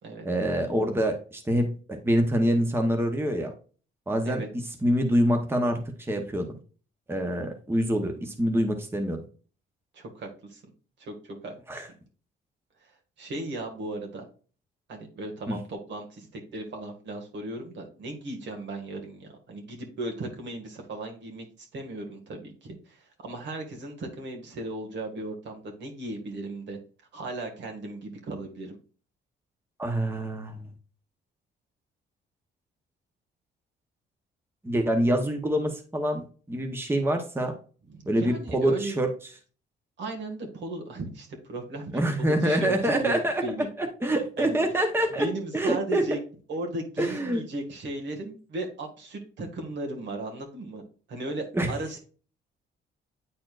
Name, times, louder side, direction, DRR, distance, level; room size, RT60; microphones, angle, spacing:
voice 1, 0.2-3.5 4.1-4.4 4.8-6.5 7.1-9.2 11.7-11.9 15.5-15.6 29.8-30.7 34.6-37.5 38.1-39.1 41.9-43.4 43.8-45.3 45.5-46.0 47.0-47.4 51.5-51.7, right 1 dB, 10° right, 4 dB, 0.9 m, -26 dB
voice 2, 9.9-10.6 11.0-11.8 12.8-12.9 13.2-14.3 14.9-26.8 27.1-28.8 37.9-38.9 40.0-42.0 42.4-43.7 44.4-44.6 45.2-46.2 46.5-50.8 51.1-52.0, right 2 dB, 65° right, 2 dB, 1.9 m, -36 dB
8.9 x 4.3 x 2.5 m, 0.39 s
cardioid pair, 90°, 20 cm